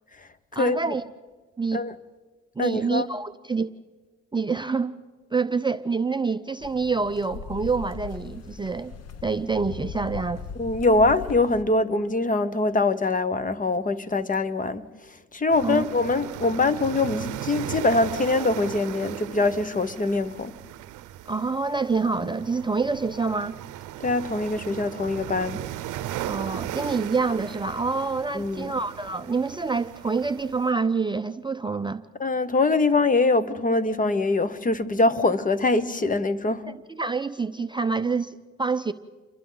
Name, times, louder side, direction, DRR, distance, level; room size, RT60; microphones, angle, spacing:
voice 1, 0.5-1.0 1.6-1.8 2.6-3.7 4.3-4.9 5.3-8.9 9.2-10.4 15.6-15.8 21.3-23.6 26.3-32.0 36.7-38.9, right 4 dB, 15° right, 0.5 m, -27 dB
voice 2, 2.6-3.1 10.6-14.8 15.3-20.5 24.0-25.6 28.3-28.7 32.2-36.7, left 3 dB, 25° left, 1.0 m, -23 dB
sound 1, 6.6-11.6, left 5 dB, 55° left, 1.0 m, -39 dB
sound 2, 15.5-30.7, right 13 dB, 85° right, 0.7 m, -37 dB
29.0 x 23.5 x 3.9 m
cardioid pair, 90°, 30 cm